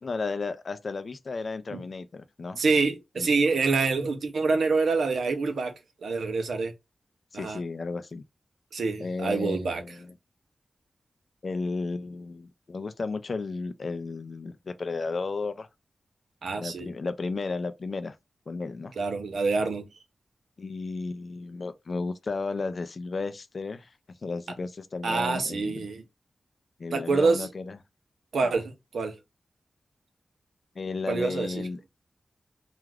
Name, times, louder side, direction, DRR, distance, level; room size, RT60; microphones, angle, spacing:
voice 1, 0.0-2.6 3.2-3.3 7.3-8.2 9.0-10.1 11.4-15.7 16.6-18.2 18.5-18.9 20.6-23.9 24.2-25.8 26.8-27.8 30.8-31.8, left 3 dB, 55° left, 0.4 m, -33 dB
voice 2, 2.6-6.7 7.3-7.6 8.7-9.8 16.4-16.9 19.0-19.9 25.0-26.0 26.9-27.5 28.3-29.1 31.1-31.7, right 4 dB, 90° right, 0.6 m, -26 dB
2.4 x 2.2 x 3.2 m
wide cardioid pair, 85°, 0 cm